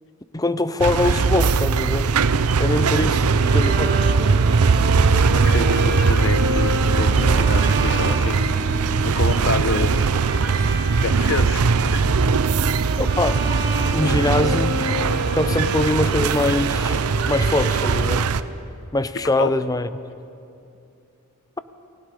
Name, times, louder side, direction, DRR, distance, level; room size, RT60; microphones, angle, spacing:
voice 1, 0.3-2.1 2.6-4.0 13.0-13.4 13.9-14.9 15.3-18.3 18.9-19.9, left 2 dB, 15° left, 13 dB, 0.6 m, -23 dB
sound 1, 0.8-18.4, right 4 dB, 85° right, 0.6 m, -20 dB
Bowed string instrument, 3.2-18.5, right 1 dB, 50° right, 1.8 m, -30 dB
voice 2, 5.3-8.5 9.0-9.9 11.0-11.6 11.9-12.0 19.4-19.5, left 4 dB, 60° left, 12 dB, 0.9 m, -28 dB
29.0 x 20.0 x 5.0 m, 2.6 s
head